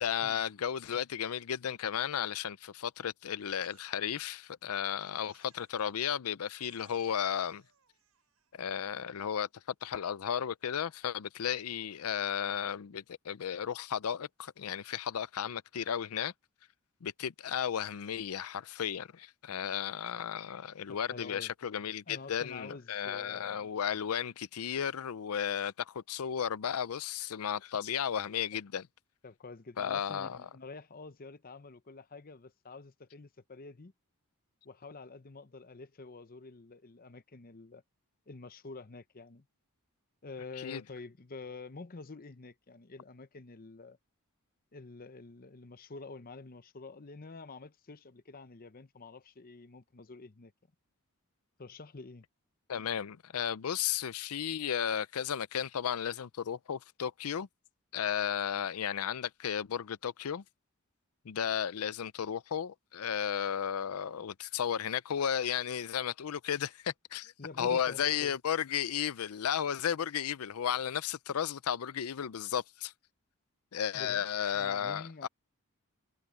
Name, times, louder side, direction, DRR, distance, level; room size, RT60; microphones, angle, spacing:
voice 1, 0.0-7.6 8.5-9.5 9.8-16.3 17.0-28.8 29.8-30.4 40.6-40.8 52.7-57.5 57.9-60.4 61.3-67.3 67.6-72.9 73.7-75.3, left 8 dB, 80° left, 0.5 m, -34 dB
Crying sobbing, 3.4-4.2 5.1-5.9 6.4-8.6, right 9 dB, 90° right, 6.0 m, -65 dB
voice 2, 20.9-21.5 22.1-23.7 28.5-28.6 29.2-33.9 34.6-37.8 38.3-39.5 40.2-44.0 44.7-50.5 51.6-52.2 67.4-68.4 73.9-74.2 74.5-75.3, left 3 dB, 40° left, 0.8 m, -48 dB
head